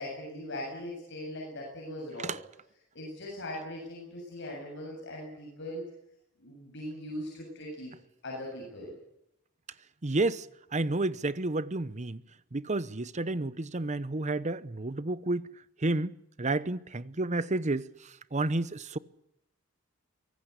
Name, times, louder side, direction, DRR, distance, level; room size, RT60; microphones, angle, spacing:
voice 1, 0.0-2.4 2.9-5.8 6.4-7.9 8.2-8.9, left 1 dB, 60° left, 7.6 m, -40 dB
voice 2, 10.0-10.5 10.7-12.2 12.5-15.5 15.8-19.0, right 2 dB, 35° right, 0.9 m, -31 dB
24.0 x 18.0 x 8.3 m
head